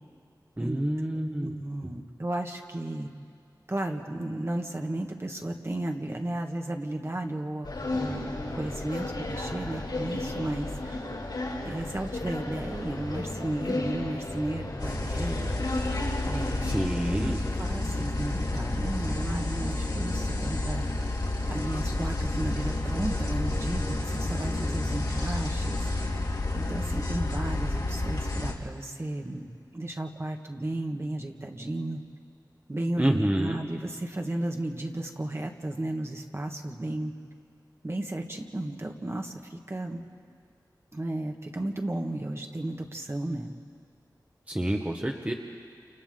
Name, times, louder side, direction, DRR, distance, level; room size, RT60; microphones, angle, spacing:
voice 1, 0.6-1.5 16.6-17.4 33.0-33.6 44.5-45.3, right 1 dB, 20° right, 1 dB, 1.4 m, -28 dB
voice 2, 1.1-3.1 3.7-7.7 7.9-11.0 11.6-15.6 16.2-16.8 17.1-20.8 21.5-25.9 26.5-32.0 32.7-37.1 37.8-40.0 40.9-43.6, right 1 dB, 35° right, 2 dB, 1.8 m, -34 dB
sound 1, 7.6-16.9, left 2 dB, 90° left, 6.1 m, -34 dB
sound 2, 14.8-28.5, left 2 dB, 70° left, 2.7 m, -30 dB
29.0 x 29.0 x 3.9 m, 2.2 s
wide cardioid pair, 60°, 7 cm